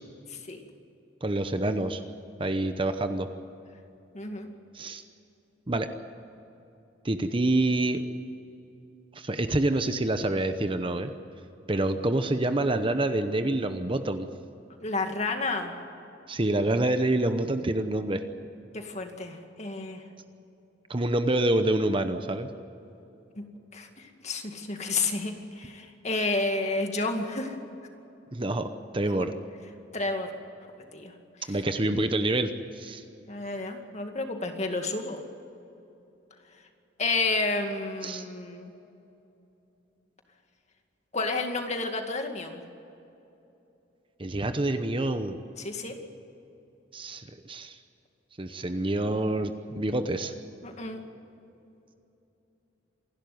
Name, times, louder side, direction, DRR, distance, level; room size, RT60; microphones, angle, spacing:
voice 1, 0.3-0.6 4.1-4.5 14.8-15.9 18.7-20.0 23.4-23.5 23.7-27.6 29.9-30.3 30.9-31.1 31.5-31.6 33.3-35.2 37.0-38.7 41.1-42.6 45.6-46.0 50.6-51.0, left 3 dB, 35° left, 4 dB, 2.2 m, -31 dB
voice 2, 1.2-2.0 2.4-3.3 4.7-5.0 5.7-5.9 7.0-8.0 9.1-11.1 11.7-14.3 16.3-18.2 20.9-22.5 28.3-28.7 28.9-29.3 31.5-33.0 38.0-38.2 44.2-45.4 46.9-47.8 48.4-50.3, right 2 dB, 25° right, 9 dB, 0.9 m, -27 dB
27.0 x 12.0 x 9.5 m, 2.9 s
head